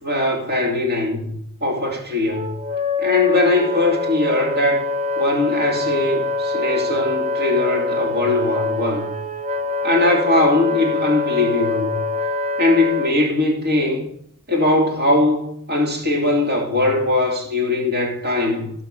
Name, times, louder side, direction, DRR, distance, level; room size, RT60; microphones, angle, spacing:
voice 1, 0.0-2.5 3.0-4.8 5.2-9.1 9.8-12.0 12.6-14.1 14.5-18.7, left 2 dB, 45° right, 2.9 m, -20 dB
Wind instrument woodwind instrument, 2.3-13.1, left 3 dB, 30° right, 0.7 m, -24 dB
17.5 x 6.0 x 5.9 m
head